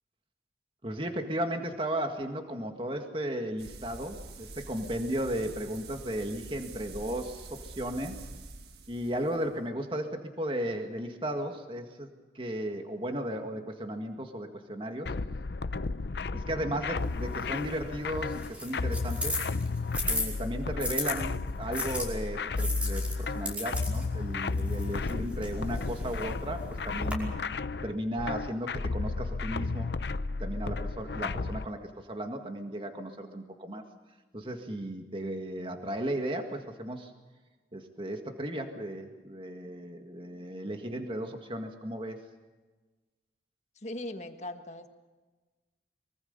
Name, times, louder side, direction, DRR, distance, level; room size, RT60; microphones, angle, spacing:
voice 1, 0.8-8.2 8.9-12.1 12.3-15.1 16.3-19.4 20.1-27.3 27.8-29.9 30.4-33.8 34.3-37.1 37.7-42.2, right 1 dB, 30° right, 4 dB, 1.9 m, -35 dB
sound 1, 3.6-9.6, right 3 dB, 65° right, 1.6 m, -46 dB
sound 2, 15.1-31.7, left 3 dB, 75° left, 0.6 m, -33 dB
sound 3, 17.0-21.1 21.7-27.1, left 1 dB, 5° right, 5.2 m, -37 dB
voice 2, 43.7-44.9, left 1 dB, 40° left, 6 dB, 1.6 m, -39 dB
24.0 x 23.5 x 5.5 m, 1.2 s
head